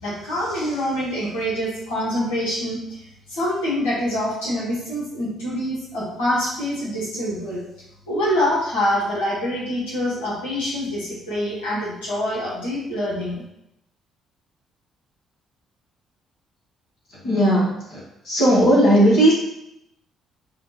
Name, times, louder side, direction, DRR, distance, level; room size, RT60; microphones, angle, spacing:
voice 1, 0.0-3.0 3.3-7.6 8.1-13.4, left 1 dB, 75° left, -9 dB, 1.4 m, -25 dB
voice 2, 17.2-18.0 18.2-19.3, right 1 dB, 55° left, -6 dB, 1.4 m, -16 dB
7.2 x 2.4 x 2.9 m, 0.84 s
figure-of-eight pair, 45°, 0 cm